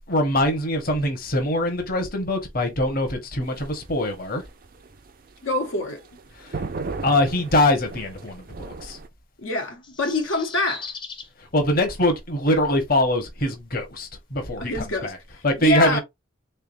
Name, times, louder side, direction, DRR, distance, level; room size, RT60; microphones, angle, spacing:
voice 1, 0.1-4.4 6.4-6.6 7.0-9.0 11.4-15.2 15.4-16.0, left 1 dB, 45° left, 1.0 m, -23 dB
sound 1, 3.4-9.1, right 4 dB, 45° right, 0.4 m, -36 dB
voice 2, 5.4-6.0 9.4-10.9 14.6-16.0, left 2 dB, 80° left, 0.9 m, -26 dB
sound 2, 9.6-11.3, left 5 dB, 25° left, 0.6 m, -38 dB
3.7 x 3.4 x 2.6 m
head